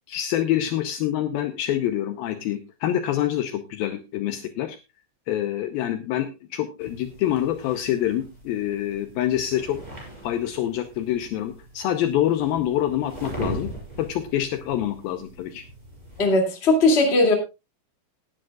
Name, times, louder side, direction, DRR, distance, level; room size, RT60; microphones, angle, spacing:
voice 1, 0.1-4.8 5.3-9.8 10.2-13.7 14.0-15.6, left 12 dB, 90° left, 8 dB, 2.1 m, -26 dB
sound 1, 6.8-16.3, right 1 dB, 10° right, 5.1 m, -40 dB
voice 2, 16.2-17.3, left 2 dB, 25° left, 2 dB, 1.6 m, -18 dB
19.0 x 10.5 x 2.4 m, 0.26 s
omnidirectional pair, 5.3 m